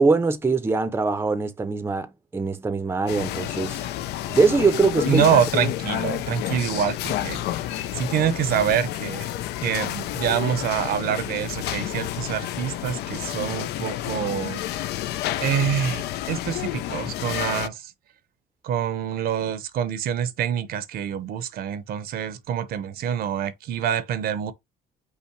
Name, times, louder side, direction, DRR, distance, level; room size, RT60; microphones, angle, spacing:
voice 1, 0.0-3.8 4.3-5.2, right 4 dB, 15° right, 0.6 m, -22 dB
sound 1, 3.1-17.7, left 13 dB, 75° left, 0.4 m, -30 dB
voice 2, 5.1-9.3 9.6-14.6 15.4-17.9 18.6-24.5, right 9 dB, 65° right, 0.7 m, -26 dB
5.6 x 2.1 x 4.5 m
cardioid pair, 110°, 17 cm